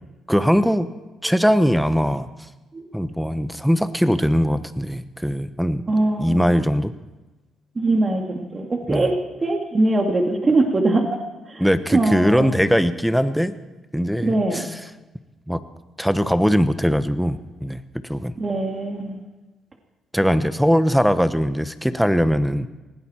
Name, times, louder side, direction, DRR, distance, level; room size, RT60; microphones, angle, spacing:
voice 1, 0.3-0.9 1.2-2.3 2.9-5.9 6.2-6.9 8.9-9.1 11.6-13.6 13.9-14.8 15.5-15.6 16.0-17.8 18.1-18.3 20.1-22.7, equal, ahead, 12 dB, 1.0 m, -20 dB
voice 2, 5.9-6.5 7.8-11.1 11.5-11.6 11.9-12.5 14.2-14.7 18.4-19.2, right 2 dB, 30° right, 3 dB, 2.3 m, -22 dB
20.0 x 16.5 x 4.4 m, 1.1 s
cardioid pair, 90°, 0 cm